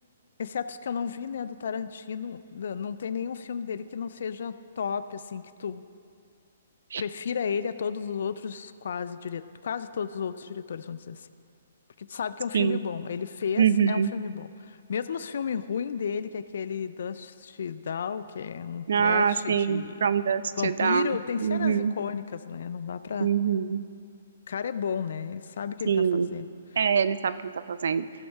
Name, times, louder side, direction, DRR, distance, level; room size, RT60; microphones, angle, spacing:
voice 1, 0.4-5.8 7.0-11.3 12.0-19.9 20.6-23.3 24.5-26.5, left 7 dB, 70° left, 13 dB, 0.4 m, -33 dB
voice 2, 13.6-14.1 18.9-21.9 23.2-23.8 25.9-26.3 26.8-28.1, right 7 dB, 70° right, 14 dB, 0.4 m, -24 dB
15.0 x 6.4 x 3.5 m, 2.3 s
hypercardioid pair, 140°, 0 cm